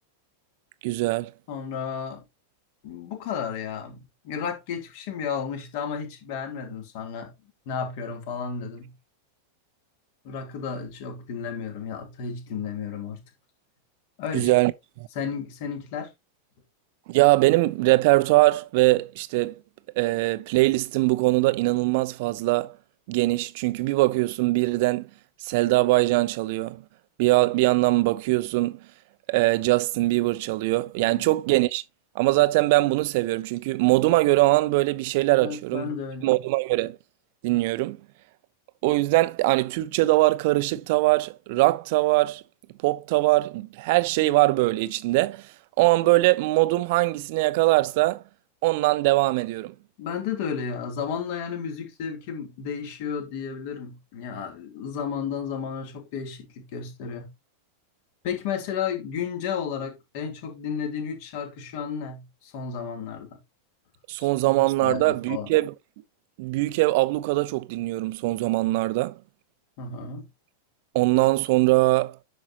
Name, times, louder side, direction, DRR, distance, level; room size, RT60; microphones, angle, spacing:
voice 1, 0.8-1.3 14.3-14.7 15.0-15.1 17.1-19.6 20.0-22.8 23.1-25.1 25.4-26.8 27.2-28.8 29.3-31.8 32.1-35.9 36.2-37.0 37.4-38.0 38.8-42.4 42.8-45.5 45.8-48.2 48.6-49.7 64.1-65.7 66.4-69.1 70.9-72.2, right 20 dB, 50° right, 0.7 m, -22 dB
voice 2, 1.5-2.2 2.8-7.3 7.7-8.9 10.2-13.2 14.2-14.5 15.1-16.1 31.0-31.2 35.4-36.3 50.0-57.3 58.2-63.4 64.2-65.5 69.8-70.3, left 7 dB, 50° left, 2.8 m, -33 dB
9.8 x 5.9 x 2.8 m
figure-of-eight pair, 90°, 0 cm